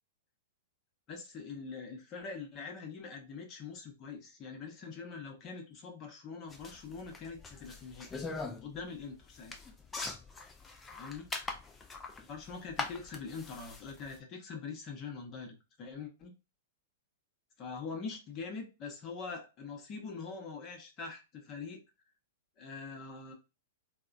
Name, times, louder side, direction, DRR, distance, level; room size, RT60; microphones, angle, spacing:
voice 1, 1.1-8.1 8.6-9.6 10.9-11.3 12.3-16.3 17.6-21.8 22.6-23.3, left 5 dB, 35° left, 2 dB, 0.8 m, -43 dB
sound 1, 6.5-14.2, left 3 dB, 15° left, 0.5 m, -42 dB
3.4 x 2.1 x 2.4 m, 0.28 s
hypercardioid pair, 110°, 0 cm